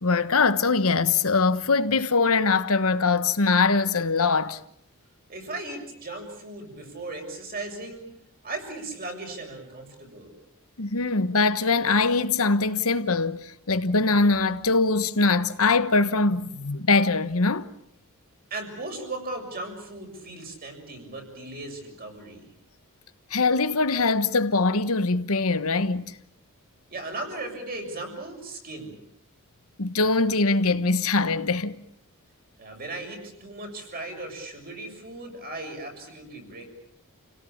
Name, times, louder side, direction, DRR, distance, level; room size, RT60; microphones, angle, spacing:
voice 1, 0.0-4.6 10.8-17.7 23.3-26.1 29.8-31.8, left 3 dB, 70° left, 1.2 m, -22 dB
voice 2, 5.3-8.1 8.4-10.3 18.5-22.5 26.9-29.0 32.6-36.7, right 2 dB, 40° right, 7.1 m, -37 dB
30.0 x 17.5 x 8.7 m
head